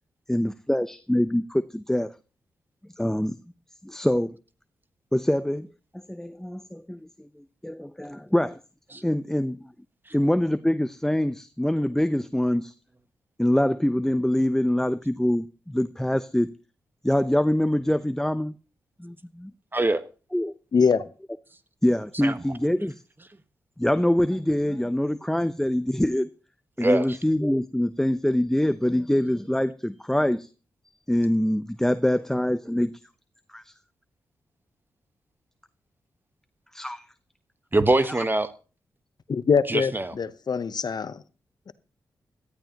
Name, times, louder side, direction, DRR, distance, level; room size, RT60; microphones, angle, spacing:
voice 1, 0.3-2.1 3.0-3.4 3.8-4.4 5.1-5.7 6.1-7.1 7.4-8.6 9.0-9.6 10.1-12.7 13.4-16.5 17.0-18.6 19.0-19.5 20.3-20.5 21.8-23.0 23.8-26.3 26.8-30.5 31.1-33.0 33.5-33.7 36.7-37.0, left 1 dB, 5° left, 0.7 m, -24 dB
voice 2, 19.7-20.1 22.1-22.4 26.8-27.2 37.7-38.5 39.7-40.1, right 2 dB, 25° right, 1.3 m, -23 dB
voice 3, 20.7-21.0 39.3-39.9 40.2-41.2 41.7-41.8, left 5 dB, 60° left, 0.9 m, -23 dB
18.0 x 13.0 x 3.0 m
supercardioid pair, 40°, 8 cm